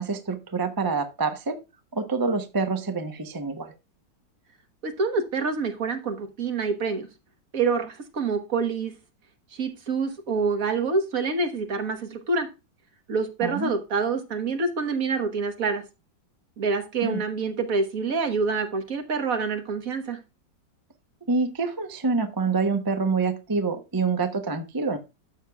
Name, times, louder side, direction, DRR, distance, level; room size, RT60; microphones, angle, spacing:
voice 1, 0.0-1.6 1.9-3.7 13.4-13.7 17.0-17.2 21.2-25.0, right 4 dB, 30° right, 7 dB, 0.4 m, -26 dB
voice 2, 4.8-7.1 7.5-8.9 9.5-12.5 13.1-15.8 16.6-20.2, right 4 dB, 50° right, 7 dB, 1.5 m, -26 dB
12.5 x 6.6 x 2.3 m, 0.27 s
omnidirectional pair, 2.0 m